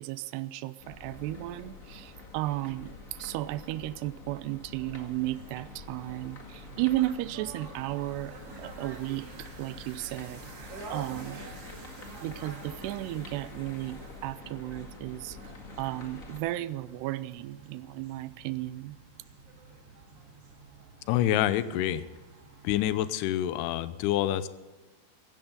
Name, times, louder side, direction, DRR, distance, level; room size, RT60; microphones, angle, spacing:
voice 1, 0.0-11.5 12.2-15.4 15.8-19.0, right 16 dB, 80° right, 15 dB, 2.5 m, -34 dB
sound 1, 0.8-16.4, left 3 dB, 55° left, 0.8 m, -47 dB
sound 2, 4.9-23.1, right 3 dB, 40° right, 2.4 m, -49 dB
voice 2, 21.1-22.1 22.6-24.5, left 12 dB, 80° left, 13 dB, 2.6 m, -27 dB
16.5 x 16.0 x 3.9 m, 1.3 s
omnidirectional pair, 5.1 m